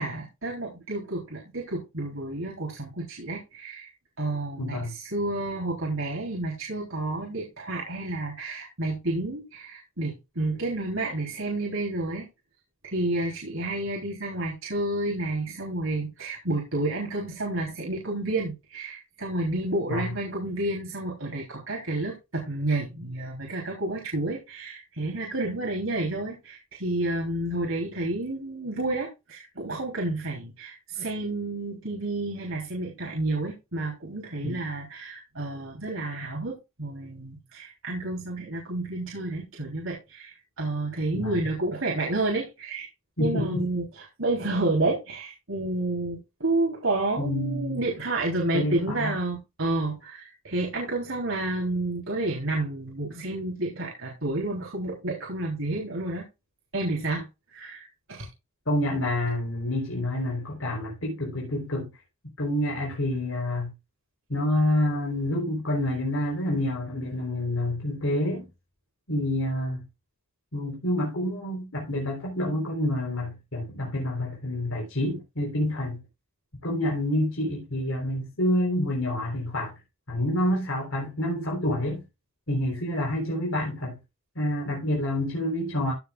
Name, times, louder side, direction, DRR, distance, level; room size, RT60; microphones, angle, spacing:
voice 1, 0.0-3.9 4.2-12.3 12.8-42.9 43.2-56.2 56.7-57.2 57.5-58.3, right 2 dB, 70° right, 3.6 m, -30 dB
voice 2, 4.6-4.9 19.9-20.1 34.4-34.6 41.1-41.4 43.2-43.6 47.2-47.8 48.5-49.1 58.7-61.9 62.4-63.7 64.3-68.5 69.1-69.8 70.5-76.0 76.6-79.7 80.1-82.0 82.5-84.0 84.4-85.9, left 1 dB, 75° left, 4.0 m, -28 dB
15.5 x 7.2 x 2.4 m
head